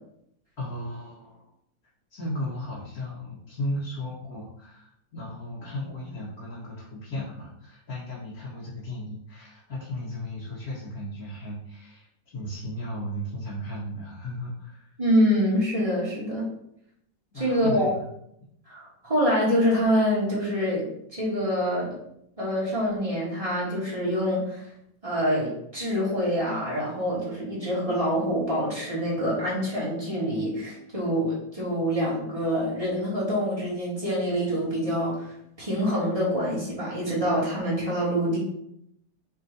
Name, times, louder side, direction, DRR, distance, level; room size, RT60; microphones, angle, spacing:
voice 1, 0.6-1.5 2.1-14.9 17.3-18.1, left 1 dB, 50° left, -8 dB, 2.4 m, -35 dB
voice 2, 15.0-16.5 17.3-17.9 18.7-22.0 22.4-24.7 25.0-38.4, equal, 15° right, -7 dB, 3.0 m, -26 dB
6.8 x 6.3 x 2.9 m, 0.72 s
omnidirectional pair, 2.0 m